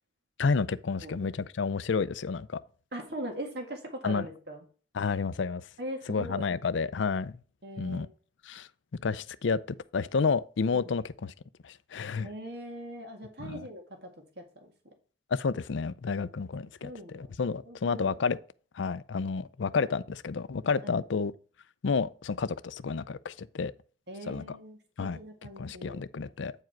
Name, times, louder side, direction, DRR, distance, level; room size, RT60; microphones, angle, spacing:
voice 1, 0.4-2.6 4.0-4.3 5.0-5.7 6.1-7.3 7.8-8.1 8.5-8.7 9.0-9.6 9.9-11.3 11.6-12.3 13.4-13.6 15.3-18.4 18.7-21.3 21.8-23.7 24.3-24.6 25.0-25.2 25.6-26.5, left 5 dB, 75° left, 0.5 m, -30 dB
voice 2, 2.9-4.6 5.8-6.5 7.6-8.1 10.7-10.9 12.2-14.1 14.3-14.7 16.8-17.3 17.6-18.2 20.8-21.0 24.1-26.0, right 1 dB, 55° right, 1.9 m, -41 dB
8.8 x 4.8 x 4.5 m
head